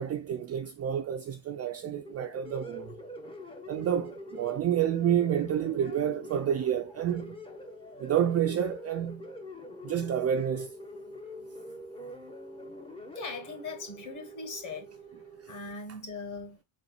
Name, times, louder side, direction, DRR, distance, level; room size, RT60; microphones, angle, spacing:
voice 1, 0.0-2.9 3.7-7.4 8.0-9.3 9.8-10.7, right 9 dB, 35° right, 0.4 m, -29 dB
sound 1, 1.9-15.7, equal, 10° left, 0.7 m, -44 dB
voice 2, 13.1-14.9 15.5-16.6, left 4 dB, 40° left, 1.6 m, -40 dB
4.2 x 3.8 x 2.4 m
cardioid pair, 120°, 49 cm